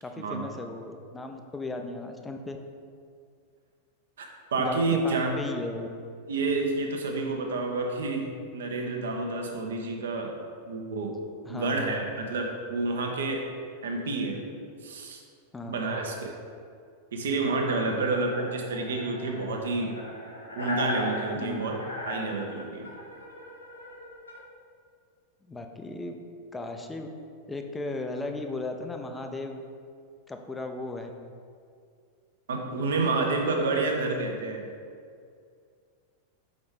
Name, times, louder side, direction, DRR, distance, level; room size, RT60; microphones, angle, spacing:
voice 1, 0.0-2.6 4.6-5.9 11.5-12.0 15.5-15.8 21.4-21.6 25.5-26.2 26.5-27.1 27.5-29.6 30.3-31.1, left 2 dB, 10° left, 4 dB, 0.5 m, -36 dB
voice 2, 4.2-5.4 6.3-10.4 10.6-11.2 11.5-13.5 13.8-14.4 14.8-15.2 15.7-16.3 17.1-20.0 20.5-22.9 32.5-34.6, right 3 dB, 65° right, 2 dB, 0.8 m, -29 dB
sound 1, 18.1-24.4, left 1 dB, 80° left, 0.9 m, -37 dB
5.1 x 4.9 x 3.7 m, 2.3 s
figure-of-eight pair, 90°, 0 cm